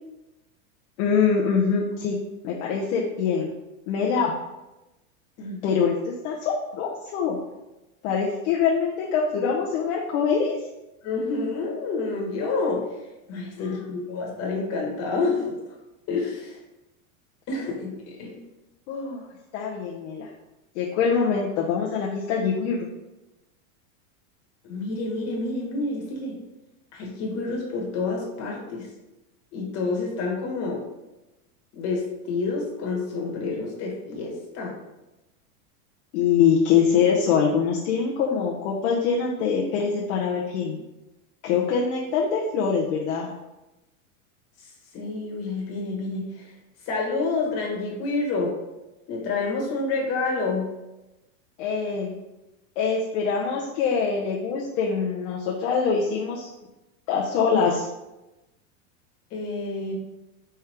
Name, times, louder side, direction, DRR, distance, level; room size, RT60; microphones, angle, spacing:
voice 1, 1.0-2.2 2.4-3.5 3.9-4.3 5.6-7.4 8.0-10.6 13.6-13.9 18.9-19.2 19.5-20.3 20.7-22.9 36.1-40.8 41.4-43.3 51.6-52.1 52.8-56.5 57.1-57.9, left 6 dB, 55° left, -3 dB, 0.7 m, -24 dB
voice 2, 11.0-12.8 13.3-15.5 16.1-16.6 17.5-18.4 24.6-26.4 26.9-28.9 29.5-30.8 31.7-34.7 44.9-46.5 46.8-48.5 49.1-50.7 59.3-59.9, left 3 dB, 35° left, -2 dB, 1.4 m, -28 dB
4.5 x 3.5 x 3.4 m, 1.0 s
supercardioid pair, 145°, 43 cm